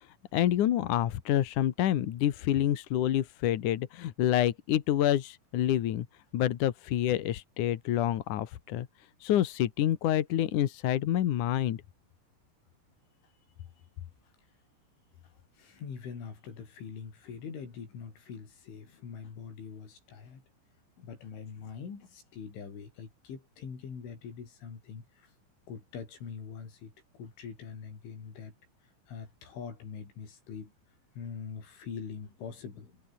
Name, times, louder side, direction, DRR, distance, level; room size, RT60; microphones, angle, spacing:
voice 1, 0.3-6.1 6.3-8.9 9.2-11.8, left 12 dB, 65° left, 2.1 m, -27 dB
voice 2, 15.2-20.4 21.0-25.3 25.7-28.5 29.1-30.7 31.1-33.0, left 6 dB, 90° left, 8.0 m, -43 dB
omnidirectional pair, 5.4 m